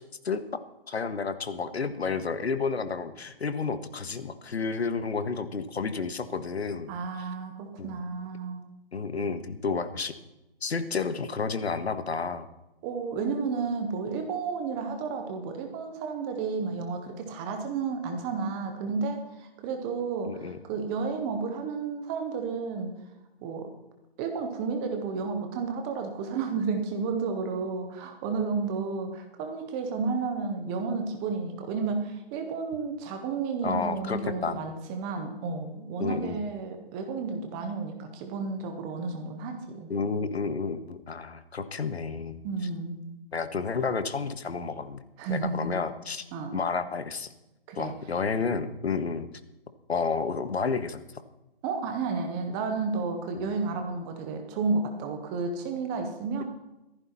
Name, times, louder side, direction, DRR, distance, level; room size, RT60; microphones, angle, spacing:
voice 1, 0.9-6.9 7.8-7.9 8.9-10.1 10.6-12.5 20.2-20.6 33.6-34.6 36.0-36.4 39.9-42.4 43.3-45.0 45.3-46.2 46.5-47.3 47.8-49.3 49.9-51.0 53.3-53.4, left 5 dB, 85° left, 11 dB, 1.7 m, -31 dB
voice 2, 6.9-8.6 12.8-22.9 23.4-23.7 24.2-39.9 42.4-43.1 45.2-45.7 46.3-46.6 47.7-47.9 51.6-56.4, right 4 dB, 5° right, 5 dB, 0.6 m, -32 dB
16.0 x 14.5 x 4.3 m, 0.95 s
hypercardioid pair, 160°, 31 cm